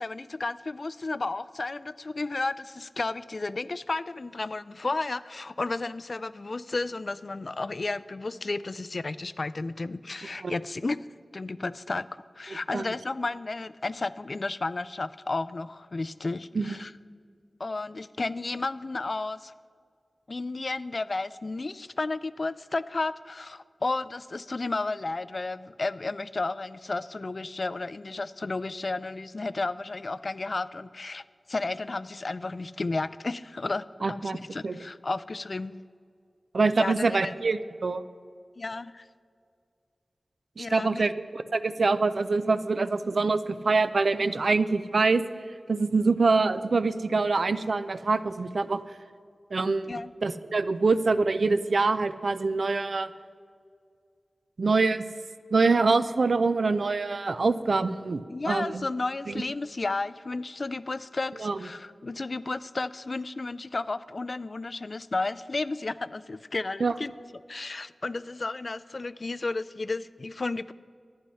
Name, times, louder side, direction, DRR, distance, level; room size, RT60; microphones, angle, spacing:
voice 1, 0.0-11.0 11.3-12.1 12.4-16.9 17.6-19.5 20.3-35.8 36.8-37.3 38.6-39.1 40.6-41.0 49.9-50.1 58.3-67.1 67.5-70.7, left 3 dB, 50° left, 16 dB, 0.3 m, -33 dB
voice 2, 34.0-34.4 34.6-34.8 36.5-38.0 40.6-45.2 45.7-48.8 49.5-49.9 50.2-53.1 54.6-55.0 55.5-58.8 59.3-59.4 61.4-61.6 66.8-66.9, right 3 dB, 75° right, 13 dB, 0.4 m, -25 dB
11.5 x 9.7 x 5.6 m, 2.2 s
wide cardioid pair, 85°, 0 cm